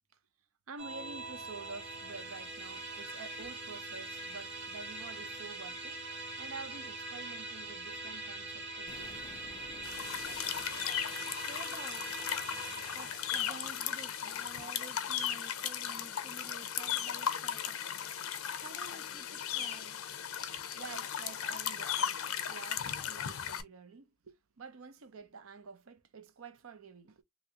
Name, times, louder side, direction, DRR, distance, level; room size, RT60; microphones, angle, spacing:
voice 1, 0.7-6.0 6.4-9.2 20.7-27.2, right 4 dB, 75° right, 0.6 m, -49 dB
Musical instrument, 0.8-16.3, right 2 dB, 60° right, 1.3 m, -43 dB
Explosion, 8.9-11.8, left 4 dB, 40° left, 0.4 m, -54 dB
sound 1, 9.8-23.6, left 9 dB, 85° left, 0.6 m, -36 dB
voice 2, 11.2-12.1 12.9-17.8 18.6-20.0, right 3 dB, 35° right, 0.4 m, -52 dB
3.1 x 2.7 x 2.8 m
head